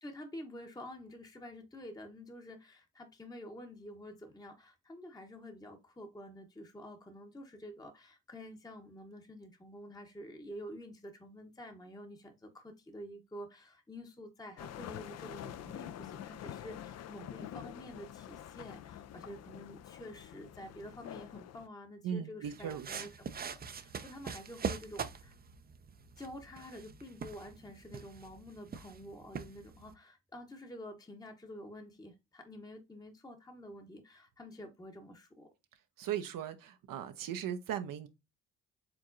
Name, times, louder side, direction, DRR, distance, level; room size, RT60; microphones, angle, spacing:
voice 1, 0.0-25.4 26.2-35.5, left 1 dB, 10° left, 0.8 m, -49 dB
sound 1, 14.6-21.7, left 11 dB, 45° left, 0.4 m, -47 dB
voice 2, 22.0-23.0 36.0-38.1, right 9 dB, 65° right, 0.7 m, -38 dB
sound 2, 22.5-29.9, right 6 dB, 25° right, 0.5 m, -43 dB
4.7 x 3.6 x 2.5 m
supercardioid pair, 55°, 36 cm